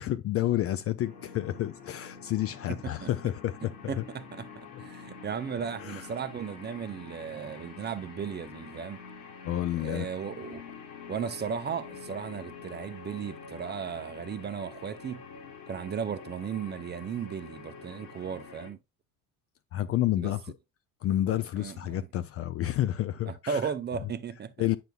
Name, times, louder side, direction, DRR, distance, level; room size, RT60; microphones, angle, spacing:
voice 1, 0.0-4.0 4.7-4.8 5.8-6.1 9.4-10.1 19.7-20.5 21.0-23.7 24.6-24.8, left 13 dB, 35° left, 0.4 m, -30 dB
sound 1, 1.0-18.7, left 5 dB, 60° left, 2.1 m, -46 dB
voice 2, 2.7-3.1 3.9-9.0 9.8-10.6 11.1-15.2 15.7-18.8 20.2-20.3 21.6-22.1 23.3-24.5, right 7 dB, 25° right, 0.6 m, -36 dB
9.0 x 5.8 x 2.3 m
figure-of-eight pair, 60°, 45 cm